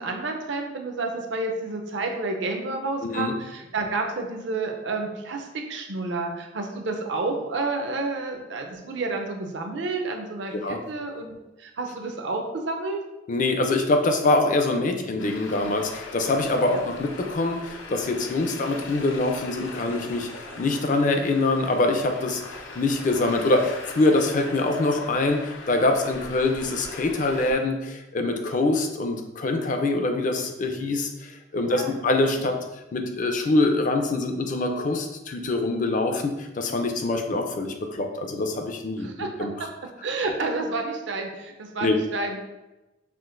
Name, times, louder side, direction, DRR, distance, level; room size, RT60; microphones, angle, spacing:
voice 1, 0.0-13.0 14.9-15.0 16.6-16.8 18.4-18.6 20.5-20.6 31.5-32.0 32.4-32.5 38.9-39.3 40.0-42.4, right 3 dB, 65° right, 3 dB, 0.6 m, -30 dB
voice 2, 3.0-3.3 10.5-10.8 13.3-20.3 20.6-32.5 32.9-39.7 41.8-42.0, left 2 dB, 40° left, 5 dB, 0.4 m, -24 dB
Traffic noise roadway noise, 15.2-27.5, left 3 dB, 85° left, 0.6 m, -40 dB
5.8 x 2.5 x 2.5 m, 1.0 s
head